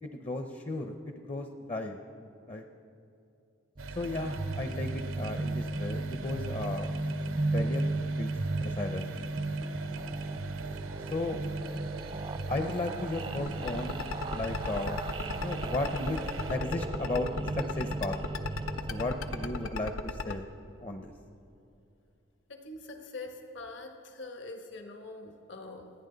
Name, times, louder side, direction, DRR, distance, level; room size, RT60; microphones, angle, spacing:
voice 1, 0.0-2.0 2.5-2.6 4.0-6.9 7.5-7.9 8.2-9.1 11.1-11.4 12.5-14.0 14.3-15.0 15.4-16.2 16.5-17.3 17.6-18.2 18.9-20.5 20.8-21.1, left 2 dB, 30° left, 6 dB, 0.7 m, -35 dB
sound 1, 3.8-19.7, right 2 dB, 25° right, 0.4 m, -35 dB
sound 2, 3.8-16.6, right 4 dB, 85° right, 0.8 m, -45 dB
sound 3, 13.5-20.3, left 4 dB, 90° left, 0.8 m, -35 dB
voice 2, 22.5-25.9, left 2 dB, 65° left, 4 dB, 1.2 m, -44 dB
29.0 x 9.8 x 3.9 m, 2.7 s
head